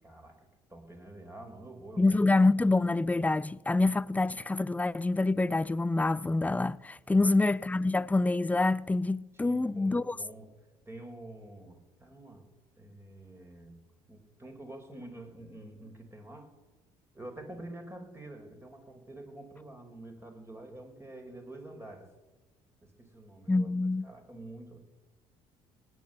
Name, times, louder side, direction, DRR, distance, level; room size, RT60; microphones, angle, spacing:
voice 1, 0.0-2.2 7.1-7.5 9.3-10.5 10.8-12.5 12.8-13.8 14.1-16.5 17.1-22.1 22.8-23.7 24.0-24.8, right 1 dB, 15° right, 5.0 m, -47 dB
voice 2, 2.0-10.2 23.5-24.1, left 2 dB, 10° left, 0.5 m, -26 dB
18.5 x 8.9 x 8.2 m
hypercardioid pair, 70°, 14 cm